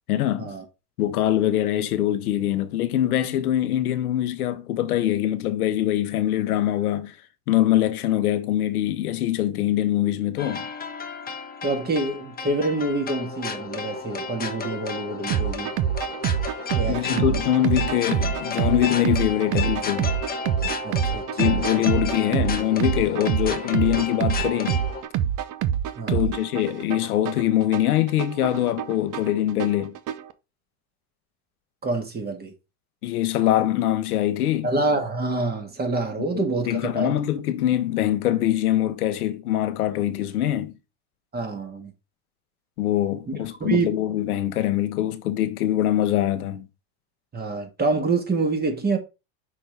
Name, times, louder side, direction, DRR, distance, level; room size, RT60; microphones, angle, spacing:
voice 1, 0.1-0.5 1.0-7.2 7.5-10.7 16.9-20.1 21.4-24.8 26.1-30.0 33.0-34.7 36.7-40.7 42.8-46.6, left 12 dB, 90° left, 0.9 m, -23 dB
sound 1, 10.4-25.0, left 4 dB, 20° left, 1.2 m, -32 dB
voice 2, 11.6-15.7 16.7-17.4 20.8-21.6 26.0-26.4 31.8-32.5 34.6-37.2 41.3-41.9 43.3-43.4 43.6-44.0 47.3-49.0, right 3 dB, 20° right, 1.9 m, -27 dB
sound 2, 15.3-30.3, right 10 dB, 45° right, 0.8 m, -26 dB
5.8 x 4.2 x 4.7 m
supercardioid pair, 100°, 43 cm